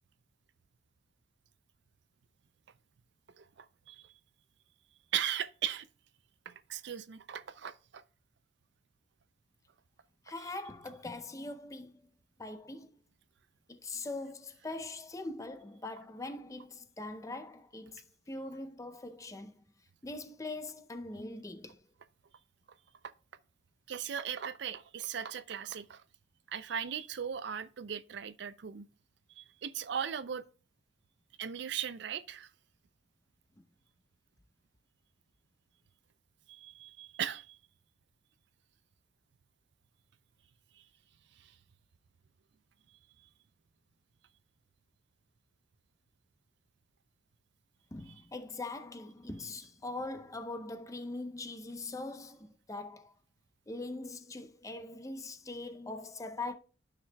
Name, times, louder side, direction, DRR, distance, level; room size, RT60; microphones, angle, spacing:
voice 1, 3.4-4.1 5.1-5.9 6.5-8.0 23.9-26.0 26.5-28.9 29.4-30.4 31.4-32.5 36.5-37.6 40.8-40.9 41.4-41.5, right 9 dB, 65° right, 0.4 m, -38 dB
voice 2, 10.2-12.1 12.4-13.0 13.7-19.5 20.0-21.8 47.9-53.1 53.7-56.5, left 2 dB, 15° left, 0.5 m, -42 dB
12.5 x 5.9 x 2.2 m
head